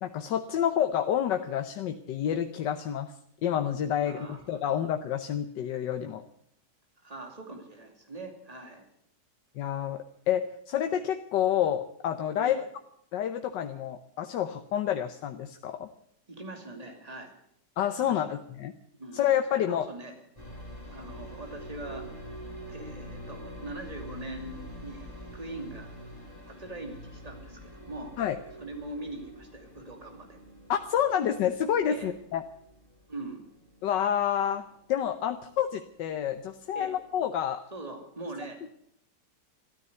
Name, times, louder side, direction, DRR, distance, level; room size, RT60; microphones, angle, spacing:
voice 1, 0.0-3.1 3.4-6.2 9.6-12.6 13.1-15.9 17.8-18.7 19.1-19.8 28.2-28.4 30.7-32.4 33.8-34.6 34.9-37.6, left 9 dB, 85° left, 8 dB, 1.5 m, -28 dB
voice 2, 4.0-4.6 7.0-8.8 12.4-12.6 16.3-17.3 18.0-18.4 19.0-19.2 19.5-20.2 20.7-22.1 22.7-26.0 26.5-28.1 28.6-30.4 31.9-32.1 33.1-33.4 36.7-37.0 37.7-38.7, right 2 dB, 20° right, 4 dB, 2.6 m, -42 dB
sound 1, 20.4-36.1 36.4-37.2, equal, 20° left, 6.3 m, -46 dB
14.0 x 12.5 x 8.0 m, 0.70 s
omnidirectional pair, 1.9 m